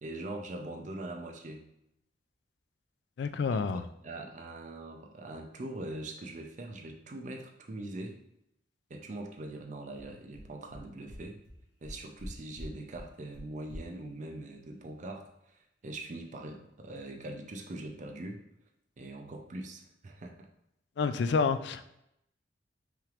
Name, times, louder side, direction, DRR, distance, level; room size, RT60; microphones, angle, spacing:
voice 1, 0.0-1.6 3.5-3.6 4.0-8.2 8.9-11.4 11.8-15.3 15.5-18.4 19.0-20.5, right 2 dB, 40° right, 3 dB, 0.5 m, -42 dB
voice 2, 3.2-3.8 21.0-21.9, left 5 dB, 65° left, 11 dB, 0.3 m, -28 dB
sound 1, 9.9-10.0 10.3-10.4 10.7-10.8 11.1-11.2 11.4-11.5 11.8-12.3 12.5-12.7 12.9-13.0 13.3-13.4 13.7-13.8, equal, 50° left, 1.5 m, -45 dB
5.8 x 3.3 x 2.5 m, 0.80 s
head